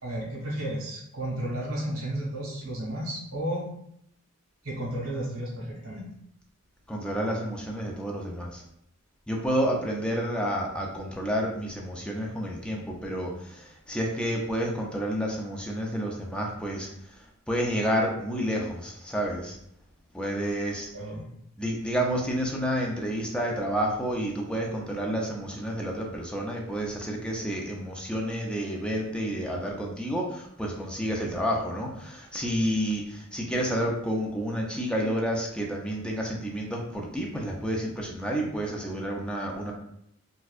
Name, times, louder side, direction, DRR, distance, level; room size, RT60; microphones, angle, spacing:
voice 1, 0.0-3.7 4.6-6.1 20.9-21.3, right 1 dB, 70° right, -5 dB, 1.5 m, -33 dB
voice 2, 6.9-8.6 9.3-16.9 17.5-19.6 20.1-20.9 21.6-39.7, equal, 5° left, -1 dB, 0.5 m, -30 dB
4.2 x 2.3 x 2.4 m, 0.73 s
head